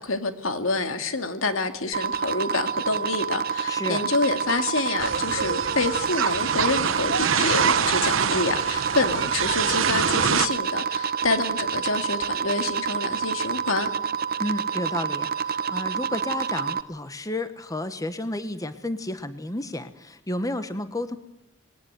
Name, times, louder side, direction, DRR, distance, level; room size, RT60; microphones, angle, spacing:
voice 1, 0.0-13.9, left 3 dB, 85° left, 7 dB, 2.4 m, -27 dB
sound 1, 1.9-16.8, right 7 dB, 45° right, 0.9 m, -28 dB
voice 2, 3.7-4.0 14.4-21.2, left 1 dB, 15° left, 10 dB, 1.2 m, -31 dB
sound 2, 5.0-10.5, right 7 dB, 75° right, 0.9 m, -25 dB
21.0 x 18.0 x 9.4 m, 0.92 s
head